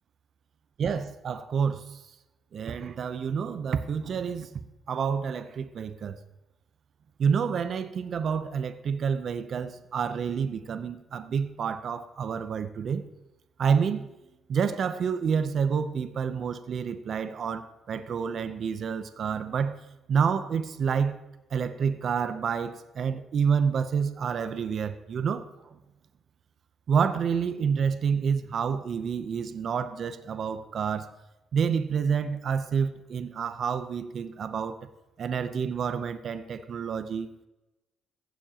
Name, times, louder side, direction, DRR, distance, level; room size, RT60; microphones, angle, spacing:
voice 1, 0.8-2.0 2.5-4.6 4.9-6.2 7.2-13.0 13.6-14.1 14.5-19.8 20.1-21.1 21.5-25.5 26.9-31.1 31.5-34.8 35.2-37.3, right 6 dB, 60° right, 10 dB, 0.6 m, -28 dB
15.5 x 7.2 x 2.9 m, 0.98 s
cardioid pair, 90°, 0 cm